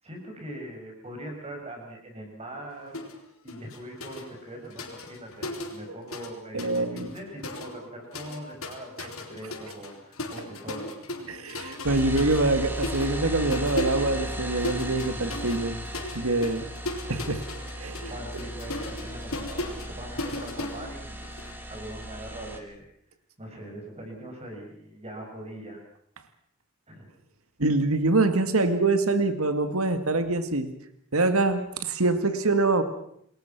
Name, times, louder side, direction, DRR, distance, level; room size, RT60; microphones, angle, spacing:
voice 1, 0.0-3.1 3.4-10.9 18.1-22.8 23.4-25.8 26.9-27.1, right 1 dB, 30° right, 1 dB, 7.2 m, -41 dB
sound 1, 2.9-3.2 3.5-6.3 6.6-21.5, left 2 dB, 70° left, 4.1 m, -37 dB
voice 2, 6.5-7.1 9.0-9.1 11.3-15.8 16.1-16.7 17.1-17.4 17.7-18.1 27.6-30.7 31.1-32.8, right 2 dB, 75° right, 9 dB, 2.2 m, -25 dB
sound 2, 11.8-22.6, equal, 10° right, 2.7 m, -36 dB
28.5 x 21.0 x 6.1 m, 0.68 s
head